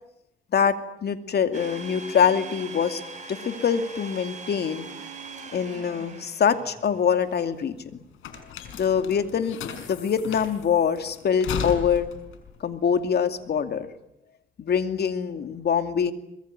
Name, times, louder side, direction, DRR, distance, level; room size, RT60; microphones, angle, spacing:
voice 1, 0.5-3.0 3.3-4.9 5.5-7.8 8.7-12.1 12.6-13.9 14.6-16.1, left 7 dB, 55° left, 8 dB, 2.6 m, -24 dB
Domestic sounds home sounds, 1.5-7.0, right 4 dB, 35° right, 7.7 m, -41 dB
sound 1, 7.0-13.8, left 7 dB, 85° left, 5.5 m, -37 dB
24.5 x 21.5 x 9.8 m, 0.84 s
cardioid pair, 90°, 20 cm